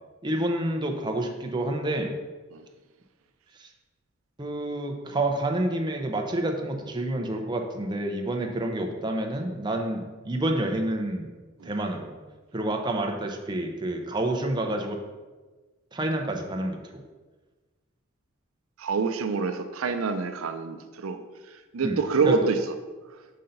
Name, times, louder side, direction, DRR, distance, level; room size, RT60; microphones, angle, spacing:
voice 1, 0.2-2.2 3.6-3.7 4.4-11.3 11.6-12.1 12.5-15.0 15.9-17.0 21.8-22.0 22.2-22.5, right 1 dB, 20° right, 3 dB, 0.6 m, -28 dB
voice 2, 18.8-21.2 21.5-22.6, right 4 dB, 85° right, 8 dB, 0.5 m, -26 dB
5.6 x 5.4 x 3.9 m, 1.3 s
head